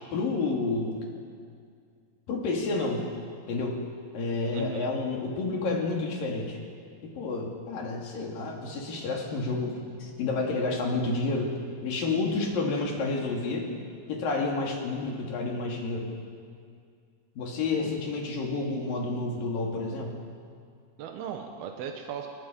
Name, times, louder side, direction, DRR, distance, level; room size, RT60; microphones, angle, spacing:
voice 1, 0.1-1.1 2.3-3.1 3.5-3.8 4.1-6.6 7.0-11.5 11.8-13.7 14.1-16.1 17.4-20.2, left 3 dB, 65° left, 0 dB, 4.2 m, -30 dB
voice 2, 4.5-4.9 17.8-18.0 21.0-22.3, right 7 dB, 85° right, 3 dB, 3.1 m, -37 dB
28.5 x 22.0 x 5.3 m, 2.2 s
omnidirectional pair, 4.4 m